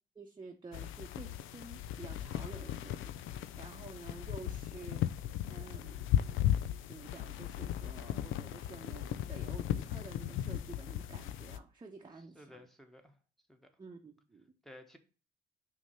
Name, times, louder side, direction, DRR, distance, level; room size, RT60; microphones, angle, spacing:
voice 1, 0.2-5.1 5.5-6.2 6.9-12.6 13.8-14.4, right 3 dB, 25° right, 0.8 m, -50 dB
sound 1, 0.7-11.6, left 11 dB, 90° left, 0.5 m, -36 dB
voice 2, 12.2-13.2 13.5-13.7 14.6-15.0, left 1 dB, ahead, 1.2 m, -55 dB
6.0 x 2.9 x 5.6 m
cardioid pair, 90°, 20 cm